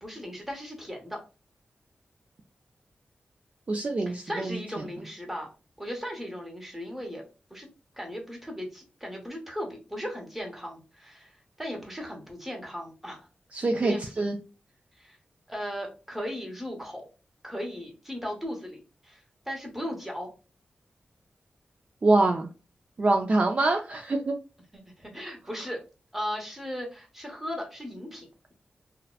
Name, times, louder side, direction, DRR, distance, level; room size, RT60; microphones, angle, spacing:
voice 1, 0.0-1.2 4.1-5.5 5.8-7.2 7.5-7.7 7.9-13.2 13.8-14.0 15.0-15.2 15.5-17.1 17.4-20.3 24.7-25.8 26.1-28.5, equal, 5° right, 0 dB, 0.9 m, -37 dB
voice 2, 3.7-4.6 13.5-14.4 22.0-22.5 23.0-24.3, right 2 dB, 40° right, 3 dB, 0.3 m, -24 dB
2.7 x 2.1 x 2.3 m, 0.33 s
wide cardioid pair, 80°, 3 cm